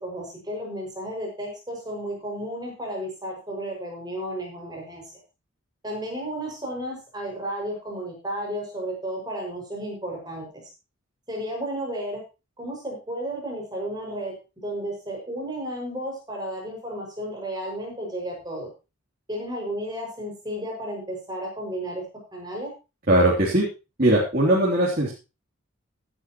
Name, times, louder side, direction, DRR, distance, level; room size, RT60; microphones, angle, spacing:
voice 1, 0.0-5.0 5.8-10.6 11.3-12.2 12.6-18.7 19.3-22.0 22.3-22.7, right 1 dB, 20° right, -1 dB, 5.9 m, -33 dB
voice 2, 23.1-23.7 24.0-25.1, right 1 dB, 45° right, -5 dB, 3.1 m, -19 dB
16.5 x 10.5 x 3.0 m, 0.29 s
head